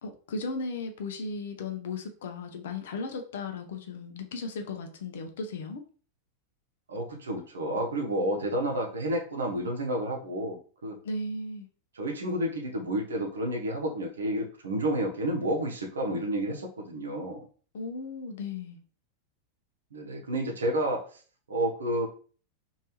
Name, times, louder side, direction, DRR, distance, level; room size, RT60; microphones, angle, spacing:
voice 1, 0.0-5.8 11.0-11.7 17.7-18.8, left 3 dB, 60° left, 0.6 m, -36 dB
voice 2, 6.9-11.0 11.9-17.5 19.9-21.2 21.5-22.1, right 1 dB, 70° right, 0.8 m, -30 dB
3.2 x 2.7 x 2.9 m
figure-of-eight pair, 90°, 0 cm